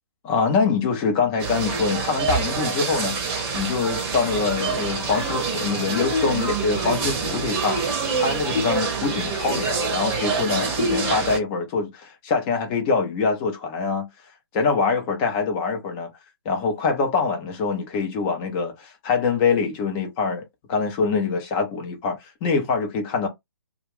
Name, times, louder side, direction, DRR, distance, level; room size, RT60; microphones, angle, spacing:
voice 1, 0.2-3.2 3.5-14.1 14.5-16.1 16.4-20.4 20.7-23.3, left 5 dB, 20° left, 0.6 m, -24 dB
sound 1, 1.4-11.4, right 4 dB, 20° right, 0.8 m, -26 dB
2.4 x 2.3 x 3.4 m
figure-of-eight pair, 135°, 13 cm